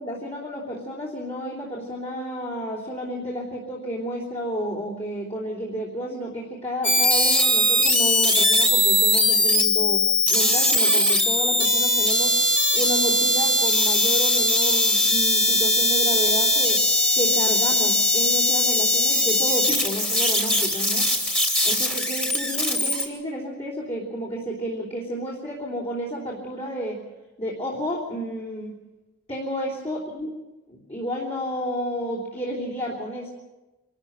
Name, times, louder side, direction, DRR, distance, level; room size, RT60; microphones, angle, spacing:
voice 1, 0.0-12.3 12.7-16.8 17.1-21.1 21.6-27.0 27.4-28.8 29.3-30.3 30.7-33.3, equal, 30° left, -5 dB, 3.3 m, -31 dB
sound 1, 6.8-23.1, left 1 dB, 5° left, 2.6 m, -20 dB
25.5 x 13.5 x 8.9 m, 1.1 s
head